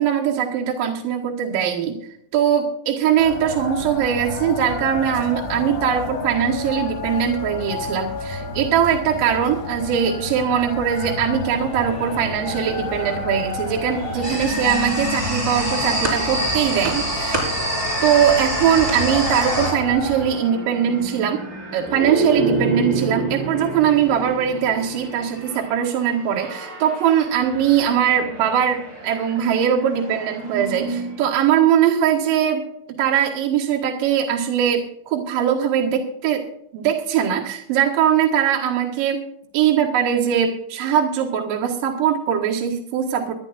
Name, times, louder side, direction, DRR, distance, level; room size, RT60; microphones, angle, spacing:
voice 1, 0.0-2.0 2.3-17.5 18.0-21.5 21.7-32.6 32.9-36.5 36.7-39.2 39.5-43.3, right 9 dB, 60° right, -1 dB, 2.7 m, -21 dB
sound 1, 3.2-20.3, left 4 dB, 75° left, 5.0 m, -31 dB
sound 2, 11.4-31.3, right 1 dB, 30° right, 5.8 m, -31 dB
sound 3, 14.2-19.7, right 1 dB, 5° right, 4.6 m, -24 dB
25.0 x 11.5 x 2.5 m, 0.73 s
omnidirectional pair, 5.2 m